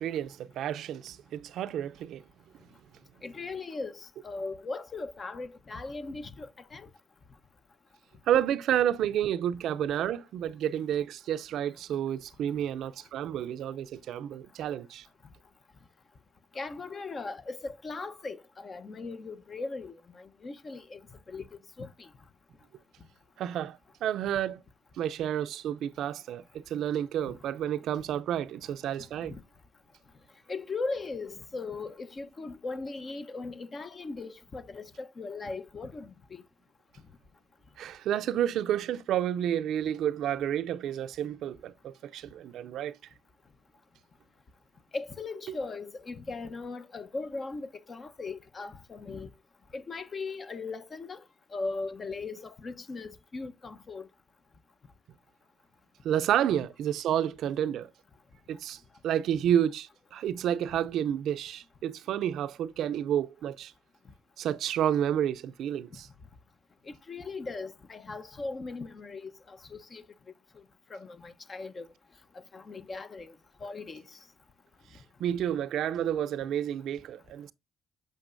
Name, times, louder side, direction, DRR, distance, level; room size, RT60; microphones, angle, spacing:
voice 1, 0.0-2.2 8.3-15.1 23.4-24.6 25.0-29.3 37.8-43.0 56.0-57.9 58.5-63.7 64.4-66.1 75.2-77.5, right 10 dB, 80° right, 0.5 m, -30 dB
voice 2, 3.2-6.9 16.5-21.0 21.3-21.5 21.8-22.1 27.2-27.3 29.2-29.4 30.5-36.4 44.9-49.3 49.7-51.2 51.5-54.1 65.9-66.0 66.9-70.0 70.9-71.9 72.5-73.4 73.6-74.0, left 3 dB, 40° left, 1.0 m, -38 dB
8.8 x 5.8 x 2.6 m
cardioid pair, 90°, 0 cm